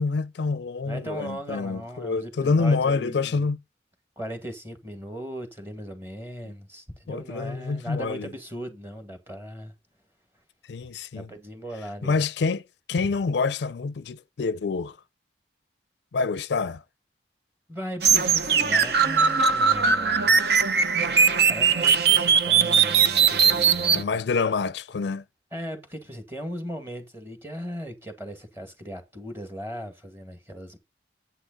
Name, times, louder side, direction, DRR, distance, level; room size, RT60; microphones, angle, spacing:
voice 1, 0.0-3.6 7.1-8.3 10.7-11.3 12.0-12.6 12.9-15.0 16.1-16.8 23.9-25.2, left 4 dB, 70° left, 0.4 m, -27 dB
voice 2, 0.8-3.5 4.2-9.7 11.1-12.2 17.7-20.4 21.4-24.2 25.5-30.8, equal, 15° right, 2.0 m, -38 dB
sound 1, 18.0-24.0, right 6 dB, 60° right, 0.8 m, -20 dB
9.9 x 8.4 x 3.9 m
head